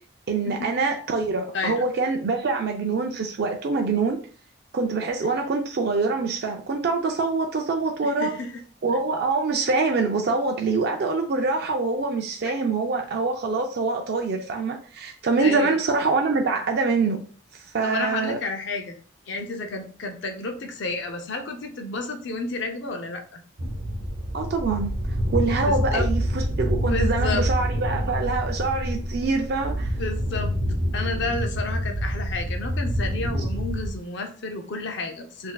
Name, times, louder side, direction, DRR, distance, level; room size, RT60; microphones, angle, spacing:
voice 1, 0.3-4.2 4.7-8.3 8.8-17.2 17.7-18.4 24.3-24.9 25.3-29.9 33.3-33.4, right 4 dB, 50° right, 0.4 m, -25 dB
voice 2, 1.5-1.8 8.0-8.5 12.4-12.5 15.4-15.8 17.8-19.0 19.3-23.4 25.6-26.1 26.8-27.4 30.0-30.5 30.9-35.5, left 3 dB, 55° left, 0.6 m, -31 dB
sound 1, 23.6-34.0, equal, 85° right, 0.8 m, -27 dB
4.0 x 2.6 x 2.3 m
head